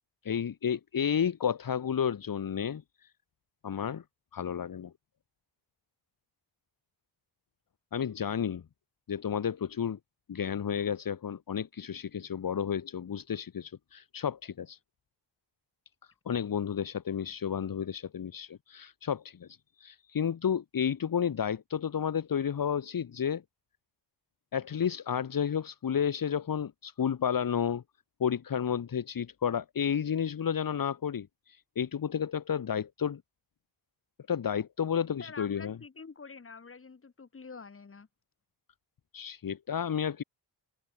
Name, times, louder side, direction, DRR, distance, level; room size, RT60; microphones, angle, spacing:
voice 1, 0.3-3.1 3.6-4.0 4.3-4.9 7.9-8.6 9.1-10.0 10.3-14.8 16.3-23.4 24.5-27.8 28.2-33.2 34.3-35.8 39.1-40.2, left 8 dB, 50° left, 2.0 m, -31 dB
voice 2, 35.2-38.1, left 4 dB, 30° left, 3.8 m, -47 dB
wide cardioid pair, 175°, 44 cm